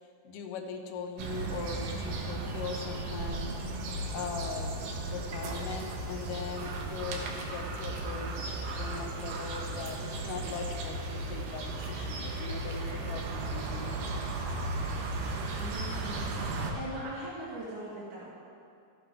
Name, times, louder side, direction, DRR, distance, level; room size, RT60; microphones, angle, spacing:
voice 1, 0.2-3.6 4.1-14.0, left 5 dB, 70° left, 4 dB, 2.1 m, -40 dB
sound 1, 1.2-16.7, right 2 dB, 70° right, 2.4 m, -35 dB
voice 2, 14.8-16.3 16.7-18.3, right 1 dB, 45° right, -7 dB, 1.8 m, -41 dB
12.5 x 10.5 x 3.7 m, 2.4 s
omnidirectional pair, 4.4 m